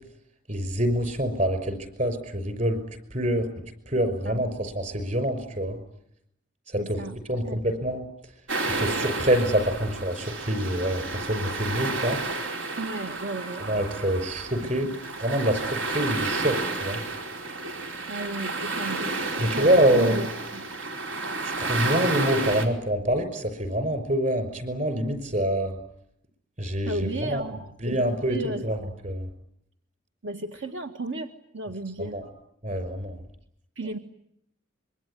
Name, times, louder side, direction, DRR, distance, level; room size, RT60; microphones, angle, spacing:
voice 1, 0.5-2.8 3.1-3.5 3.9-5.8 6.7-7.0 7.3-8.0 8.6-12.2 13.6-17.0 19.0-19.1 19.4-20.2 21.4-25.8 26.6-27.4 27.8-28.8 29.0-29.3 32.0-32.2 32.6-33.2, right 1 dB, 40° right, 11 dB, 5.6 m, -26 dB
voice 2, 6.8-7.2 7.4-7.6 12.8-13.8 14.6-14.8 18.1-19.1 19.4-20.6 26.8-28.8 30.2-32.2 33.7-34.0, right 2 dB, 65° right, 5 dB, 1.6 m, -34 dB
sound 1, 8.5-22.7, right 3 dB, 85° right, 4.8 m, -31 dB
26.0 x 23.5 x 9.8 m, 0.75 s
head